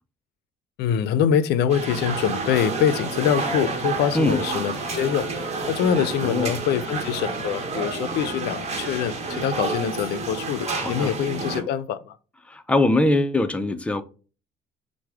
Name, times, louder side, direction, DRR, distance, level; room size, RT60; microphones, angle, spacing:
voice 1, 0.8-5.3 5.7-12.2, left 8 dB, 80° left, 0.4 m, -24 dB
sound 1, 1.7-11.6, right 3 dB, 40° right, 1.0 m, -29 dB
voice 2, 6.2-6.6 10.7-11.1 12.5-14.0, left 2 dB, 5° left, 0.4 m, -22 dB
4.6 x 2.1 x 4.5 m
cardioid pair, 110°, 17 cm